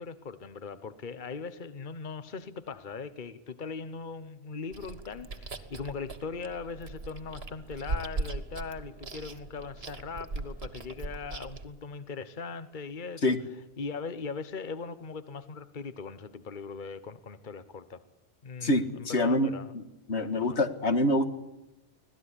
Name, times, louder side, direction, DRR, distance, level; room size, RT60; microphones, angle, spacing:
voice 1, 0.0-13.3 13.8-18.0 18.4-19.7 20.2-20.6, left 5 dB, 50° left, 12 dB, 1.3 m, -40 dB
Chewing mastication, 4.7-11.7, right 3 dB, 65° right, 1.9 m, -39 dB
voice 2, 18.6-19.5 19.7-19.8 20.1-21.2, left 1 dB, 85° left, 9 dB, 2.2 m, -25 dB
25.5 x 18.0 x 10.0 m, 0.96 s
omnidirectional pair, 1.1 m